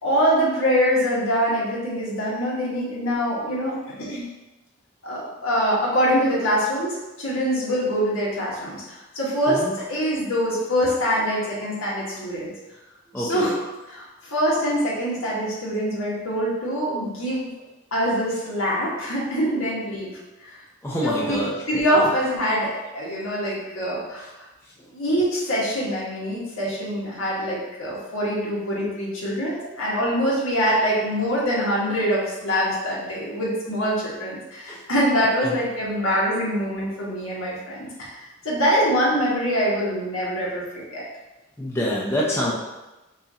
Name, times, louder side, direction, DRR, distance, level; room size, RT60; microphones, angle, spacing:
voice 1, 0.0-4.2 5.0-12.5 13.2-13.5 13.9-17.5 17.9-20.1 20.4-20.5 21.0-24.5 24.9-41.0, equal, 85° left, -6 dB, 1.4 m, -24 dB
voice 2, 13.1-13.5 20.8-22.1 24.8-24.9 34.7-34.8 35.4-35.5 41.6-42.5, equal, 10° left, -6 dB, 0.5 m, -27 dB
5.5 x 2.6 x 2.8 m, 1.1 s
head